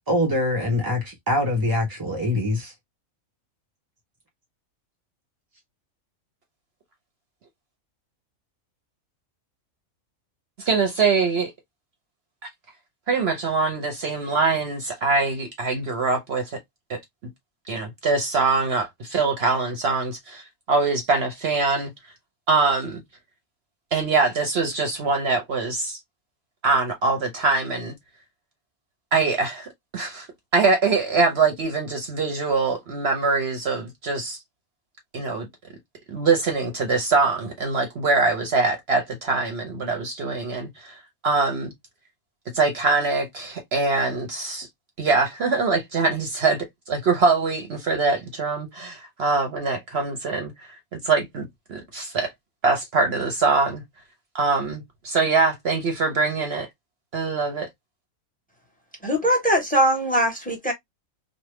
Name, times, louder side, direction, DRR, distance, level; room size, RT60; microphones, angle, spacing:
voice 1, 0.1-2.7, left 1 dB, 25° right, 0.5 m, -24 dB
voice 2, 10.6-11.5 13.1-16.6 16.9-17.0 17.7-21.9 22.5-23.0 23.9-26.0 26.6-27.9 29.1-30.3 30.5-34.4 35.1-35.5 36.1-41.7 42.5-44.7 45.0-50.5 50.9-52.3 52.6-53.8 54.3-56.7 57.1-57.7, right 4 dB, 55° right, 0.9 m, -23 dB
voice 3, 59.0-60.7, equal, 5° left, 1.1 m, -21 dB
3.2 x 2.2 x 3.0 m
omnidirectional pair, 1.5 m